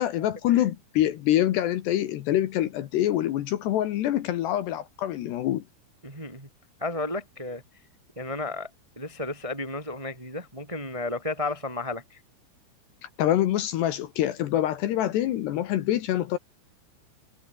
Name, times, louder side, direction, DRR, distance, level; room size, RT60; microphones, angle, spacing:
voice 1, 0.0-5.6 13.0-16.4, left 12 dB, 70° left, 3.1 m, -25 dB
voice 2, 6.0-6.5 6.8-7.6 8.1-8.7 8.9-12.2, left 2 dB, 10° right, 1.8 m, -33 dB
omnidirectional pair, 5.6 m